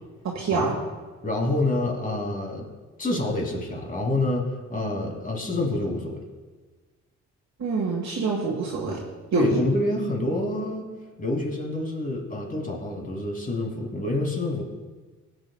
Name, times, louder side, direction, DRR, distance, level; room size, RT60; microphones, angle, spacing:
voice 1, 0.2-0.7 7.6-9.0 9.3-9.6, right 4 dB, 60° right, -3 dB, 1.9 m, -25 dB
voice 2, 1.2-2.7 3.0-6.2 9.3-10.8 11.2-14.7, left 2 dB, 25° left, 0 dB, 2.7 m, -27 dB
15.5 x 8.9 x 2.4 m, 1.4 s
cardioid pair, 90°, 30 cm